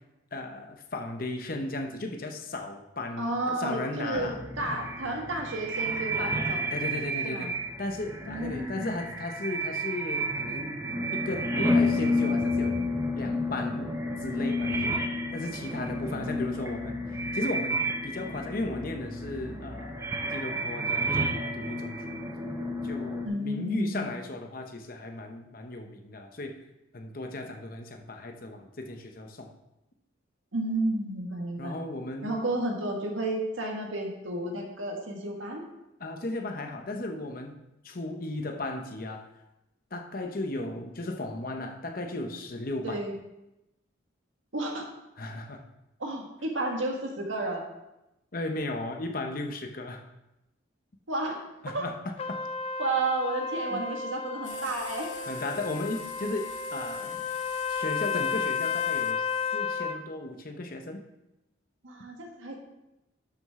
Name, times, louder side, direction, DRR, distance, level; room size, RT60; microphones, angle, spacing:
voice 1, 0.3-4.4 6.7-7.5 7.8-10.8 11.1-12.8 13.1-13.9 14.2-15.0 15.3-22.2 22.8-26.6 26.9-29.5 31.6-32.4 36.0-37.6 37.8-39.3 39.9-43.0 45.2-45.6 48.3-50.0 51.6-52.5 53.7-53.8 55.3-57.2 57.7-61.0, left 2 dB, 45° left, 4 dB, 0.8 m, -35 dB
voice 2, 3.2-6.7 7.2-7.5 8.2-9.0 23.2-24.1 30.5-31.8 32.2-35.6 42.8-43.1 44.5-44.9 46.0-47.6 51.1-51.4 51.7-51.9 52.8-55.1 61.8-62.6, right 2 dB, 80° right, 1 dB, 1.7 m, -32 dB
sound 1, 4.1-23.3, equal, 15° right, 0.9 m, -31 dB
Trumpet, 52.2-60.0, left 6 dB, 30° left, 0.5 m, -32 dB
sound 2, 54.4-59.1, left 7 dB, 75° left, 0.9 m, -47 dB
11.5 x 6.3 x 3.7 m, 0.92 s
head